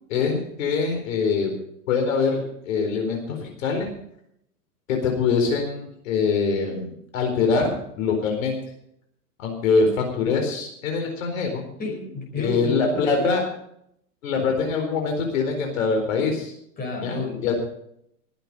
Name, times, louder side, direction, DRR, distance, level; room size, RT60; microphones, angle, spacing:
voice 1, 0.1-1.5 1.9-3.9 4.9-8.6 9.4-11.6 12.4-13.4 14.2-16.5 17.0-17.5, left 4 dB, 60° left, 3 dB, 4.4 m, -24 dB
voice 2, 11.8-13.3 14.3-14.5 16.8-17.5, left 3 dB, 20° left, 0 dB, 5.5 m, -30 dB
21.0 x 9.1 x 5.5 m, 0.73 s
hypercardioid pair, 140°, 46 cm